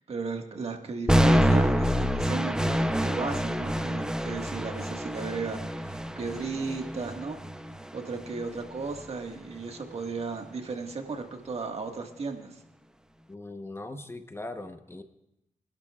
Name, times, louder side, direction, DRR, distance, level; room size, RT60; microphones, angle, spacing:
voice 1, 0.0-7.4 7.9-12.6, right 4 dB, 60° right, 3 dB, 1.7 m, -35 dB
sound 1, 1.1-9.1, equal, 5° right, 0.7 m, -27 dB
voice 2, 13.3-15.0, left 2 dB, 20° left, 7 dB, 1.0 m, -40 dB
25.5 x 12.0 x 2.4 m, 0.82 s
cardioid pair, 70°, 12 cm